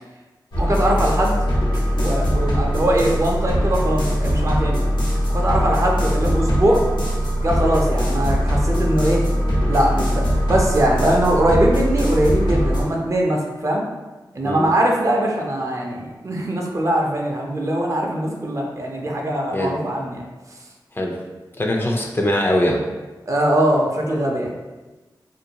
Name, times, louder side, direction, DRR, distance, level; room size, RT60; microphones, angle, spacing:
sound 1, 0.5-12.8, equal, 85° left, 0.7 m, -21 dB
voice 1, 0.6-1.3 1.9-4.8 5.3-6.9 7.4-9.2 9.7-13.8 14.3-20.2 23.3-24.5, right 1 dB, 40° right, -1 dB, 0.5 m, -21 dB
voice 2, 21.6-22.8, left 1 dB, 30° left, 0 dB, 0.4 m, -21 dB
2.5 x 2.2 x 2.8 m, 1.2 s
cardioid pair, 55°, 8 cm